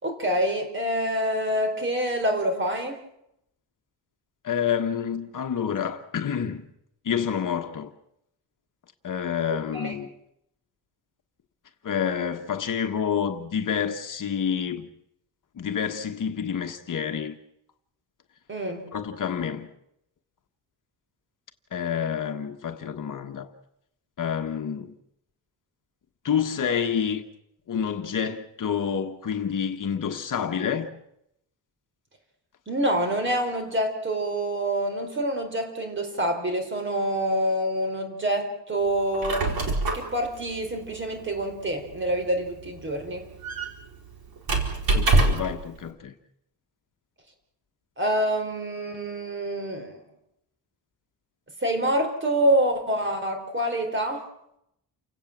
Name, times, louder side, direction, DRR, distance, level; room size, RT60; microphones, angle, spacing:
voice 1, 0.0-3.0 9.5-9.9 18.5-18.8 32.7-39.5 39.9-43.2 48.0-50.0 51.6-54.2, right 1 dB, 30° right, 4.3 m, -26 dB
voice 2, 4.4-6.7 7.0-7.9 9.0-10.1 11.8-14.9 15.5-17.4 18.9-19.7 21.7-23.5 24.2-24.9 26.2-27.2 27.7-31.0 44.9-46.1, left 7 dB, 50° left, 1.4 m, -28 dB
Squeak, 39.0-45.6, right 3 dB, 60° right, 4.6 m, -27 dB
29.0 x 17.0 x 7.4 m
wide cardioid pair, 175°, 41 cm